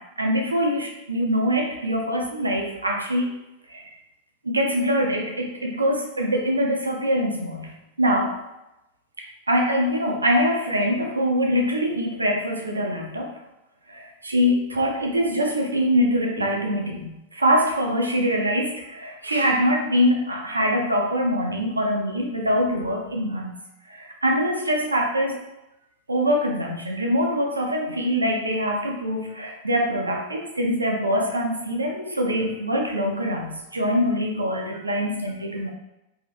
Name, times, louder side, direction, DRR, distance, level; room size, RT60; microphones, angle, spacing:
voice 1, 0.0-3.3 3.7-3.8 4.4-8.4 9.2-13.4 13.9-23.6 23.9-25.4 26.1-35.7, equal, 80° right, 1 dB, 0.5 m, -24 dB
2.8 x 2.7 x 2.5 m, 0.94 s
figure-of-eight pair, 90°, 0 cm